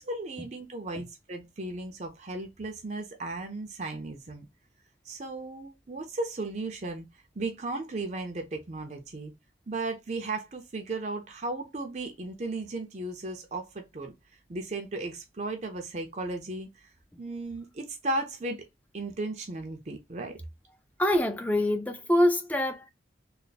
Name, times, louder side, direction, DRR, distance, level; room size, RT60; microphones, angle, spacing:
voice 1, 0.0-4.5 5.1-9.3 9.7-14.1 14.5-16.9 17.2-18.7 18.9-20.4, right 2 dB, 40° right, 0.6 m, -35 dB
voice 2, 21.0-22.9, left 1 dB, 10° left, 0.5 m, -25 dB
3.3 x 2.1 x 3.9 m
head